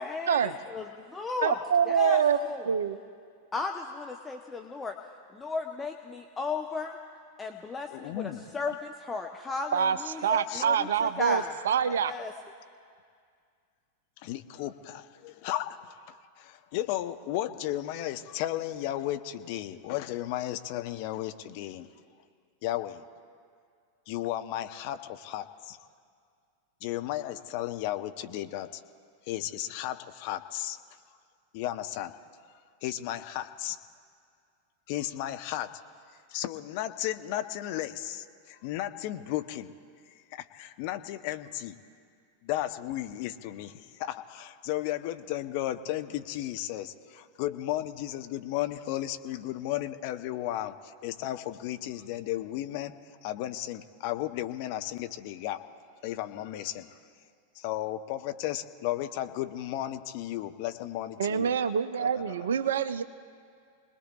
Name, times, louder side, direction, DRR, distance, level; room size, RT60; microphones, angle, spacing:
voice 1, 0.0-1.6 1.9-2.6 3.5-5.0 5.3-7.0 7.4-11.5 11.9-12.3, left 4 dB, 15° left, 4 dB, 0.8 m, -35 dB
voice 2, 1.4-2.4 2.7-3.0 9.7-12.1 61.2-63.0, right 7 dB, 65° right, 11 dB, 0.6 m, -26 dB
voice 3, 7.9-8.4 10.5-10.6 14.2-21.9 22.6-23.0 24.1-25.8 26.8-28.8 29.2-30.8 31.5-32.1 32.8-33.8 34.9-35.7 36.3-39.7 40.1-41.8 42.4-52.9 53.2-55.6 56.0-57.0 57.5-61.6 62.0-62.3, left 13 dB, 45° left, 9 dB, 0.8 m, -34 dB
28.5 x 20.5 x 2.4 m, 2.1 s
figure-of-eight pair, 90°, 0 cm